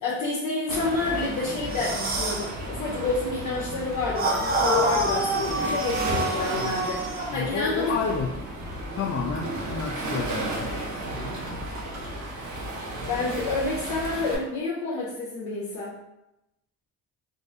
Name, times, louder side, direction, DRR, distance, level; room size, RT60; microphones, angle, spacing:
voice 1, 0.0-8.1 13.1-15.9, left 3 dB, 80° left, -6 dB, 0.9 m, -29 dB
Waves surf, 0.7-14.3, right 1 dB, 80° right, 1.1 m, -33 dB
sound 1, 1.7-2.5 4.2-7.3, right 2 dB, 30° right, 0.7 m, -27 dB
voice 2, 7.3-8.5 9.0-11.0, left 5 dB, 50° left, 1 dB, 0.5 m, -30 dB
3.9 x 2.5 x 3.8 m, 0.89 s
cardioid pair, 90°, 30 cm